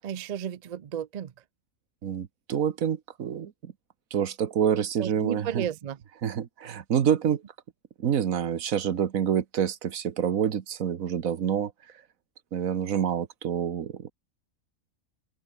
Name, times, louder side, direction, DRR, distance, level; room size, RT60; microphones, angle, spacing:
voice 1, 0.0-1.3 5.0-6.0, right 9 dB, 55° right, 0.4 m, -33 dB
voice 2, 2.0-3.5 4.1-5.7 6.2-7.4 8.0-11.7 12.5-14.1, right 8 dB, 75° right, 1.5 m, -27 dB
open air
omnidirectional pair, 1.5 m